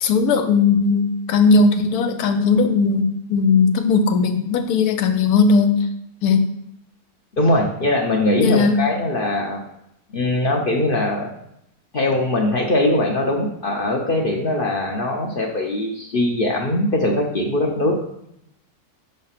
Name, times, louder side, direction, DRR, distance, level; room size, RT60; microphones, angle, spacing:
voice 1, 0.0-5.8 6.2-6.5 8.4-8.9, left 4 dB, 85° left, 7 dB, 1.1 m, -17 dB
voice 2, 7.4-9.6 10.1-11.3 11.9-17.9, left 1 dB, 50° left, 0 dB, 0.7 m, -21 dB
5.4 x 3.3 x 5.6 m, 0.78 s
omnidirectional pair, 1.6 m